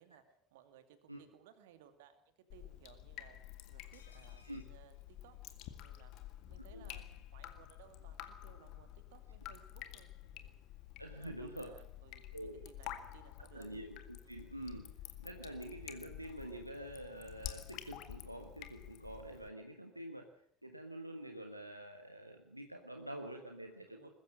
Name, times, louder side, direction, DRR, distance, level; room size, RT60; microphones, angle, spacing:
voice 1, 0.0-6.1 6.5-10.6 11.1-13.7 14.2-14.5 19.9-20.0 23.9-24.1, right 9 dB, 65° right, 9 dB, 2.4 m, -62 dB
Drip, 2.5-19.5, left 13 dB, 55° left, 1.9 m, -50 dB
sound 1, 3.9-5.9 6.2-6.3 6.6-6.7, left 5 dB, 75° left, 2.5 m, -67 dB
voice 2, 11.0-11.7 12.3-12.7 13.5-14.9 15.2-20.3 20.6-24.1, right 1 dB, 90° right, 4 dB, 1.5 m, -47 dB
21.0 x 14.5 x 8.7 m, 0.65 s
figure-of-eight pair, 65°, 0 cm